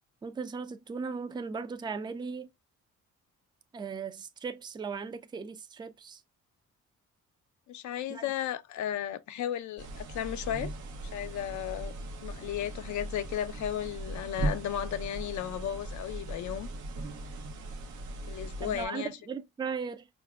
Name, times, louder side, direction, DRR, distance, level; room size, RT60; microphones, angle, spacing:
voice 1, 0.2-2.5 3.7-6.2 8.1-8.2 18.6-20.1, right 5 dB, 15° right, 0.4 m, -37 dB
voice 2, 7.7-10.7 11.1-11.9 12.2-16.7 18.3-19.1, left 10 dB, 75° left, 0.6 m, -34 dB
sound 1, 9.8-18.9, right 2 dB, 75° right, 0.8 m, -38 dB
4.9 x 2.5 x 2.3 m
cardioid pair, 90°, 30 cm